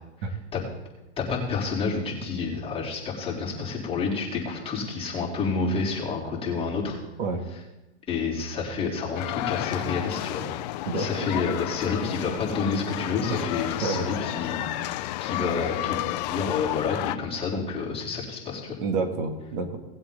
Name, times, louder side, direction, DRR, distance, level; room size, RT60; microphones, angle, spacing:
voice 1, 1.2-7.0 8.1-10.4 10.9-18.8, left 4 dB, 15° left, -6 dB, 3.7 m, -29 dB
sound 1, 9.1-17.2, left 16 dB, 40° left, 0.5 m, -31 dB
voice 2, 10.9-11.3 13.3-13.4 13.8-14.0 18.8-19.8, right 4 dB, 50° right, 5 dB, 2.2 m, -29 dB
18.5 x 7.9 x 3.9 m, 1.0 s
hypercardioid pair, 140°, 33 cm